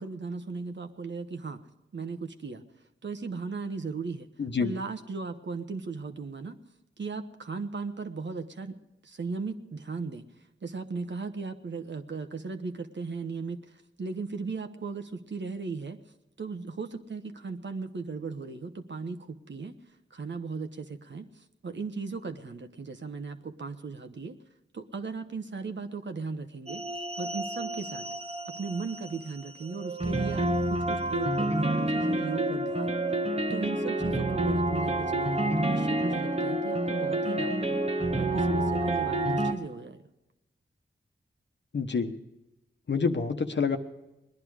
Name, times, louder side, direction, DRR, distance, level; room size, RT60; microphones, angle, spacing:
voice 1, 0.0-1.6 1.9-2.6 3.0-4.3 4.6-6.6 7.0-8.8 9.0-10.3 10.6-16.0 16.4-19.8 20.1-24.4 24.7-26.8 27.2-28.1 28.5-33.0 33.5-37.8 38.1-40.0, right 4 dB, 60° right, 7 dB, 1.2 m, -37 dB
voice 2, 4.4-4.7 41.7-42.1 42.9-43.8, left 5 dB, 60° left, 7 dB, 1.1 m, -27 dB
sound 1, 26.7-39.5, right 1 dB, 30° right, 1.2 m, -29 dB
19.5 x 11.0 x 4.8 m, 0.95 s
cardioid pair, 45°, 21 cm